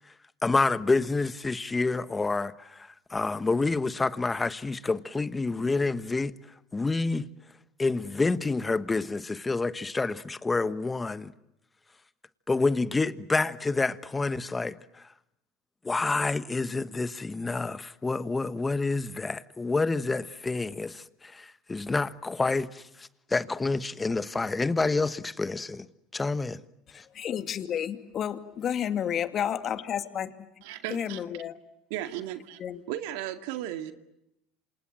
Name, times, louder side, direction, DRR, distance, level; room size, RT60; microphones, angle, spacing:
voice 1, 0.4-6.3 6.7-7.3 7.8-11.3 12.5-14.8 15.8-25.9 26.1-26.6, left 3 dB, 15° left, 1.3 m, -28 dB
voice 2, 26.9-30.3 30.9-31.5 32.6-32.8, left 9 dB, 40° left, 2.4 m, -31 dB
voice 3, 30.6-31.2 31.9-32.6 32.9-33.9, right 12 dB, 75° right, 2.3 m, -35 dB
27.5 x 27.5 x 7.6 m
supercardioid pair, 105°, 0 cm